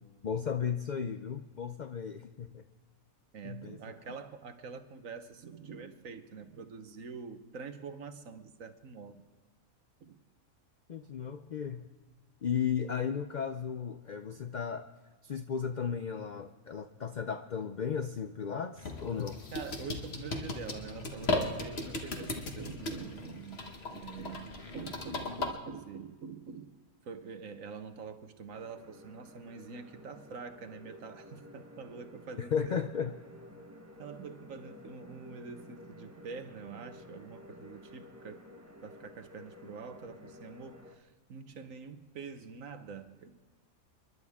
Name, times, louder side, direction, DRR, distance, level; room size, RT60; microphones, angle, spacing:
voice 1, 0.2-2.6 3.4-3.8 10.9-11.8 12.4-14.9 15.2-19.4 32.5-33.2, left 7 dB, 75° left, 9 dB, 0.4 m, -35 dB
voice 2, 3.3-9.2 10.0-10.2 19.5-23.6 23.9-26.7 27.0-32.8 34.0-38.5 38.8-43.3, right 5 dB, 65° right, 9 dB, 1.4 m, -45 dB
sound 1, 18.8-25.5, left 2 dB, 45° left, 1.6 m, -37 dB
sound 2, 28.5-41.0, left 1 dB, 10° right, 0.9 m, -52 dB
29.5 x 11.0 x 3.6 m, 1.3 s
omnidirectional pair, 1.5 m